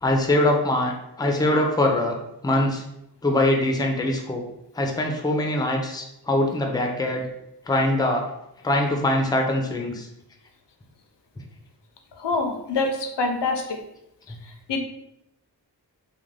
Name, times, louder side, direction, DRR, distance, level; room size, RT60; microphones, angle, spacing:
voice 1, 0.0-2.2 2.4-2.8 3.2-4.4 4.7-7.3 7.7-8.2 8.6-10.1 14.3-14.4, left 1 dB, 10° left, 1 dB, 0.4 m, -23 dB
voice 2, 12.2-13.8 14.7-14.8, left 3 dB, 75° left, 4 dB, 0.5 m, -25 dB
2.4 x 2.2 x 3.1 m, 0.82 s
wide cardioid pair, 55°, 42 cm